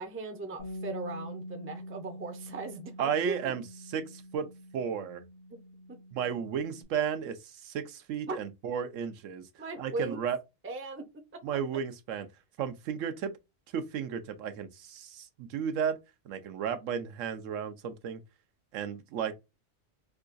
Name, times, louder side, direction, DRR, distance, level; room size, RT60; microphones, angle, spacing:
voice 1, 0.0-3.4 8.3-8.4 9.6-10.2 10.6-11.0, right 3 dB, 20° right, 0.4 m, -38 dB
Bass guitar, 0.6-6.8, equal, 70° left, 1.7 m, -45 dB
voice 2, 3.0-5.2 6.1-10.4 11.4-12.3 12.6-13.3 13.7-16.0 16.3-18.2 18.7-19.3, right 7 dB, 85° right, 1.0 m, -34 dB
4.7 x 2.3 x 2.5 m
omnidirectional pair, 1.3 m